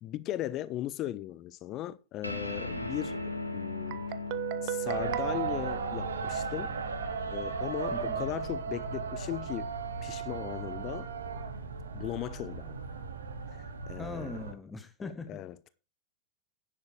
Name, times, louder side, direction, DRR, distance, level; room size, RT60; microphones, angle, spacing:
voice 1, 0.0-3.2 3.5-4.0 4.6-6.7 7.3-9.7 10.0-11.1 11.9-12.7 13.9-14.4 15.3-15.7, left 13 dB, 35° left, 0.6 m, -37 dB
sound 1, 2.2-9.0, left 2 dB, 90° left, 1.4 m, -40 dB
Guitar, 3.9-6.7, right 15 dB, 45° right, 0.7 m, -37 dB
sound 2, 4.9-14.5, right 5 dB, 70° right, 1.3 m, -36 dB
voice 2, 7.9-8.3 14.0-15.7, left 3 dB, 10° left, 1.2 m, -41 dB
10.5 x 7.4 x 4.8 m
figure-of-eight pair, 90°, 0 cm